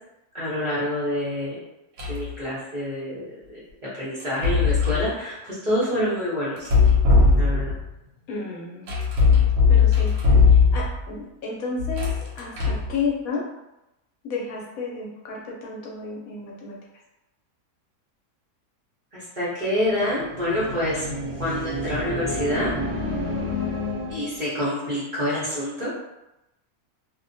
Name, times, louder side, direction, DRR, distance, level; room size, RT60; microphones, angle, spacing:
voice 1, 0.3-1.6 2.1-3.2 3.9-6.7 7.4-7.7 19.1-21.1 21.4-22.7 24.1-26.0, left 1 dB, 40° right, -10 dB, 0.7 m, -27 dB
sound 1, 2.0-2.3 4.2-5.1 6.6-7.9 8.9-11.1 11.8-12.9, left 5 dB, 85° right, 1.2 m, -18 dB
voice 2, 8.3-8.9 9.7-10.1 10.5-12.1 12.4-13.4 14.2-16.8, left 4 dB, 70° left, -2 dB, 1.0 m, -32 dB
sound 2, 19.9-24.5, left 1 dB, 60° right, 1.0 m, -30 dB
2.7 x 2.1 x 2.5 m, 0.92 s
omnidirectional pair, 1.6 m